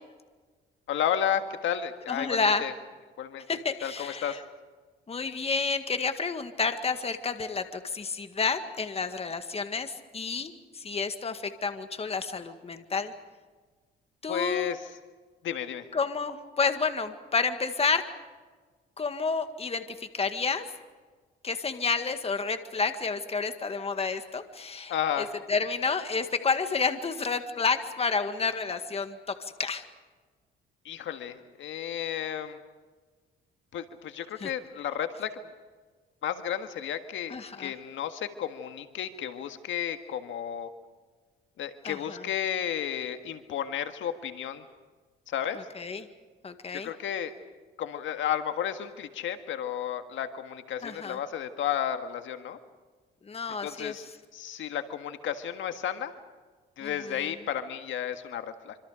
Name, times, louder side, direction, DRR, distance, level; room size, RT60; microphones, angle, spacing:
voice 1, 0.9-2.7 3.2-3.4 3.8-4.4 14.3-14.9 15.4-15.9 24.9-25.3 30.9-32.6 33.7-35.4 36.2-40.7 41.6-44.6 45.3-45.6 46.7-47.3 47.8-52.6 53.6-54.0 54.3-56.1 56.8-58.8, left 9 dB, 75° left, 8 dB, 1.7 m, -32 dB
voice 2, 2.1-2.6 3.5-4.4 5.1-13.1 14.2-14.7 15.9-18.0 19.0-20.7 21.4-29.8 34.4-34.5 37.3-37.7 41.8-42.2 45.7-46.1 46.4-46.9 50.8-51.2 53.2-53.9 56.8-57.3, left 4 dB, 30° left, 8 dB, 1.9 m, -30 dB
26.5 x 26.0 x 5.1 m, 1.4 s
cardioid pair, 100°, 20 cm